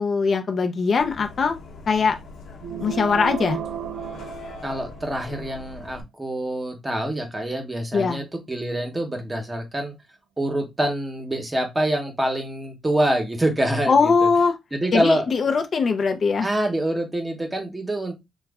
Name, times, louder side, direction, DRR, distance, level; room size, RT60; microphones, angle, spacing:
voice 1, 0.0-1.6 1.9-2.2 2.8-3.6 7.9-8.2 13.9-14.5 14.9-16.5, left 5 dB, 40° left, 0.4 m, -21 dB
Bus, 1.0-6.0, left 3 dB, 70° left, 0.9 m, -42 dB
sound 1, 2.6-5.3, right 10 dB, 80° right, 0.3 m, -33 dB
voice 2, 4.6-9.9 10.4-14.1 14.7-15.3 16.4-18.1, right 1 dB, 15° right, 0.9 m, -25 dB
3.0 x 2.2 x 3.5 m
cardioid pair, 145°, 0 cm